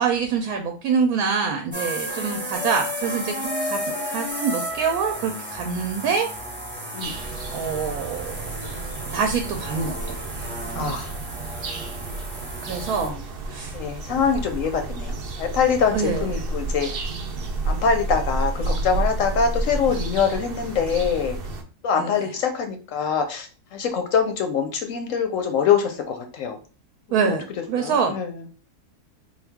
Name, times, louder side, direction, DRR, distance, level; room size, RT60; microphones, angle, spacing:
voice 1, 0.0-3.8 4.1-6.3 7.0-8.6 9.1-10.2 10.7-11.1 12.6-13.1 13.4-13.8 15.9-16.3 22.0-22.2 27.1-28.1, right 6 dB, 75° right, 4 dB, 1.0 m, -25 dB
sound 1, 1.7-13.1, equal, 10° right, 0.8 m, -33 dB
sound 2, 7.0-21.6, right 2 dB, 60° right, 0.6 m, -31 dB
voice 2, 10.7-11.1 13.0-13.2 13.7-17.0 17.6-21.4 21.8-26.6 27.1-27.4 27.8-28.4, left 6 dB, 70° left, 5 dB, 0.8 m, -24 dB
3.8 x 2.4 x 3.4 m, 0.36 s
omnidirectional pair, 1.6 m